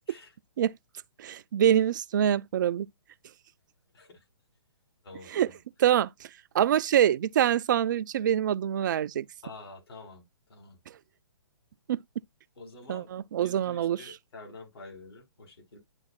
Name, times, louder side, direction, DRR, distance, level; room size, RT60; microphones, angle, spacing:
voice 1, 1.2-2.9 5.3-5.5 5.8-6.1 6.5-9.3 11.9-12.0 12.9-14.0, right 10 dB, 45° right, 0.4 m, -25 dB
voice 2, 3.9-4.2 5.0-5.6 9.4-10.8 12.6-13.1 13.4-15.8, left 3 dB, 65° left, 3.6 m, -48 dB
10.5 x 4.0 x 2.2 m
figure-of-eight pair, 130°, 14 cm